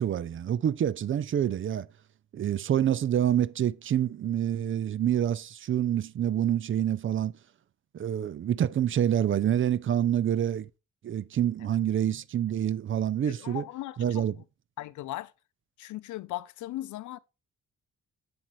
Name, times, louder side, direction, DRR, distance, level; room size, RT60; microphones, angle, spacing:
voice 1, 0.0-1.9 2.3-7.3 7.9-10.7 11.0-13.6 14.0-14.3, right 10 dB, 45° right, 0.5 m, -27 dB
voice 2, 13.2-14.4 14.8-15.3 15.8-17.2, left 16 dB, 75° left, 0.6 m, -38 dB
7.9 x 7.1 x 3.1 m
cardioid pair, 90°, 30 cm